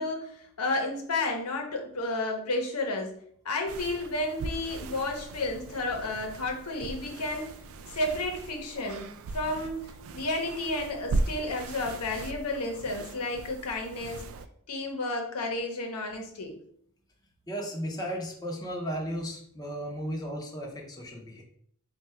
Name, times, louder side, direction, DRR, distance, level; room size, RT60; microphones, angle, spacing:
voice 1, 0.0-3.2 3.4-7.5 7.9-9.9 10.1-14.2 14.7-16.5, left 2 dB, 80° left, 3 dB, 0.8 m, -32 dB
sound 1, 3.7-14.5, right 3 dB, 65° right, 0.3 m, -38 dB
voice 2, 17.5-21.4, equal, 15° left, -1 dB, 0.6 m, -35 dB
3.7 x 2.3 x 4.3 m, 0.63 s
head